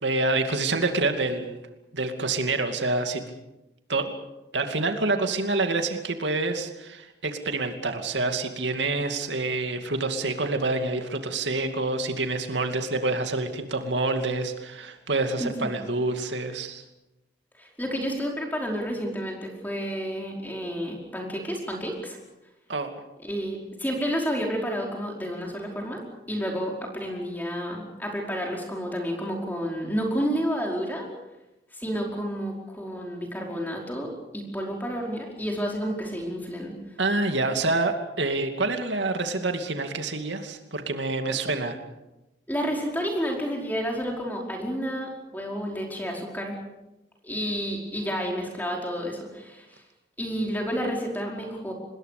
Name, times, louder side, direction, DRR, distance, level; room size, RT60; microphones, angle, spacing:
voice 1, 0.0-1.7 1.9-3.2 3.9-4.1 4.5-16.8 22.7-22.9 37.0-41.8, right 2 dB, 85° right, 6 dB, 2.5 m, -27 dB
voice 2, 15.4-15.7 17.6-22.2 23.2-26.0 26.3-31.1 31.7-36.8 42.5-46.6 47.2-49.8 50.2-51.7, equal, 10° left, 0 dB, 5.0 m, -30 dB
26.0 x 21.0 x 6.8 m, 0.97 s
head